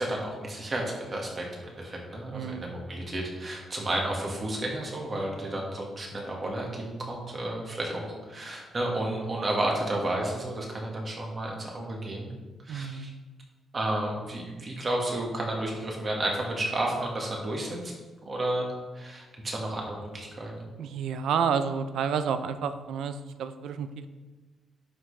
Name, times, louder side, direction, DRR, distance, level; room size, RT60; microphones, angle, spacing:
voice 1, 0.0-12.3 12.6-13.1 13.7-17.9 18.2-18.7 18.9-20.6, right 1 dB, 30° right, -1 dB, 1.7 m, -32 dB
voice 2, 2.3-2.7 12.7-13.1 20.8-24.1, right 7 dB, 75° right, 10 dB, 0.5 m, -30 dB
11.0 x 6.0 x 3.3 m, 1.3 s
cardioid pair, 160°, 0 cm